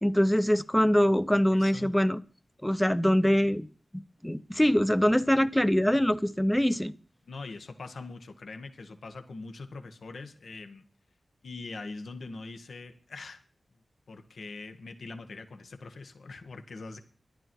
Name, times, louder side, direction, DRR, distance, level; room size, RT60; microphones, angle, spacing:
voice 1, 0.0-2.2 2.6-3.7 4.2-6.9, equal, 5° left, 0.7 m, -23 dB
voice 2, 1.5-2.0 7.2-10.8 11.4-13.4 14.1-17.0, left 3 dB, 80° left, 1.6 m, -42 dB
13.5 x 11.5 x 4.6 m
wide cardioid pair, 90°, 0 cm